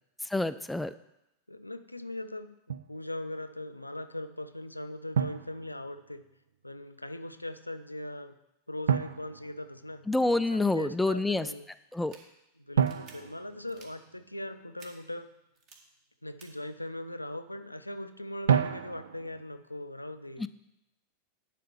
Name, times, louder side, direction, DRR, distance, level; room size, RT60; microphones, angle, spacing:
voice 1, 0.2-0.9 10.1-11.5 11.9-12.1 20.4-20.5, left 2 dB, 5° left, 11 dB, 0.3 m, -27 dB
voice 2, 1.5-2.5 2.9-6.2 6.6-8.3 8.7-11.7 12.6-15.3 16.2-20.5, left 1 dB, 85° left, 9 dB, 0.5 m, -40 dB
Drum, 2.7-3.0 5.1-6.3 8.9-10.3 12.8-14.5 18.5-19.4, right 8 dB, 65° right, 0.4 m, -31 dB
sound 1, 11.9-12.2 12.8-13.1 13.7-13.9 14.8-14.9 15.5-15.7 16.4-16.5, right 5 dB, 40° right, 1.6 m, -53 dB
10.0 x 4.2 x 6.9 m, 0.88 s
figure-of-eight pair, 90°, 0 cm